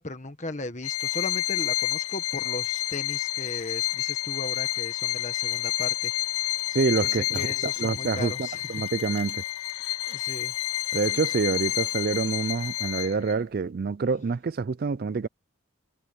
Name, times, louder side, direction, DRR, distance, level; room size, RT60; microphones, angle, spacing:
voice 1, 0.0-6.3 7.0-8.7 10.1-10.5, left 2 dB, 35° left, 1.5 m, -37 dB
Bowed string instrument, 0.8-13.3, left 16 dB, 80° left, 0.4 m, -29 dB
sound 1, 6.6-9.3 9.7-10.2, right 7 dB, 30° right, 7.1 m, -54 dB
voice 2, 6.7-9.4 10.9-15.3, right 4 dB, 45° right, 0.4 m, -27 dB
head